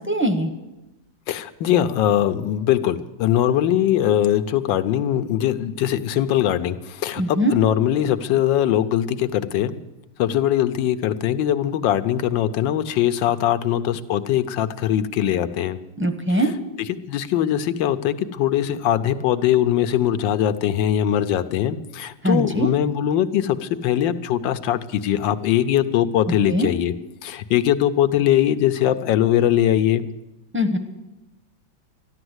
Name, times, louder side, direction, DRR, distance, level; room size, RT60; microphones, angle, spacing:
voice 1, 0.1-0.5 7.2-7.5 16.0-16.5 22.2-22.7 26.5-26.7 30.5-30.8, equal, 15° right, 7 dB, 0.5 m, -21 dB
voice 2, 1.3-9.8 10.2-15.8 17.1-26.9 27.2-30.1, left 11 dB, 85° left, 11 dB, 1.5 m, -21 dB
14.0 x 11.5 x 8.0 m, 0.99 s
omnidirectional pair, 2.0 m